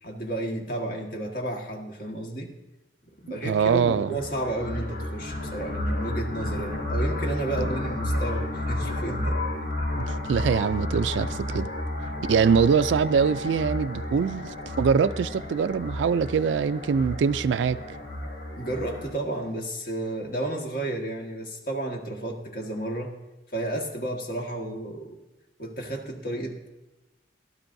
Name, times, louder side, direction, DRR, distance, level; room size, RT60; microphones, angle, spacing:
voice 1, 0.0-2.5 3.2-9.4 18.6-23.1 23.5-25.2 25.6-26.7, right 1 dB, 50° left, 1.6 m, -32 dB
voice 2, 3.4-4.1 7.6-7.7 10.0-11.7 12.3-17.8, right 6 dB, 85° right, 0.3 m, -23 dB
sound 1, 3.5-19.1, left 1 dB, 80° left, 4.8 m, -31 dB
16.5 x 12.5 x 2.6 m
head